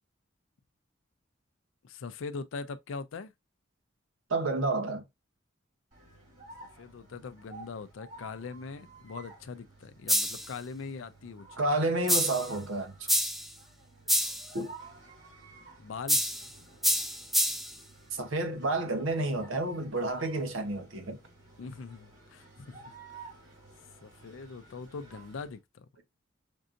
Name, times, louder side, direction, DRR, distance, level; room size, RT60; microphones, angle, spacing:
voice 1, 1.8-3.3 6.8-11.6 15.8-16.2 21.6-22.8 24.0-25.9, left 4 dB, 75° left, 0.4 m, -41 dB
voice 2, 4.3-5.0 11.6-12.9 14.5-14.7 18.1-21.2, right 2 dB, 85° right, 0.9 m, -30 dB
sound 1, 5.9-25.6, right 3 dB, 40° right, 2.3 m, -53 dB
sound 2, 10.1-10.5 12.1-12.5 13.1-13.5 14.1-14.5 16.1-16.5 16.8-17.7, equal, ahead, 0.3 m, -27 dB
5.2 x 2.6 x 2.5 m
head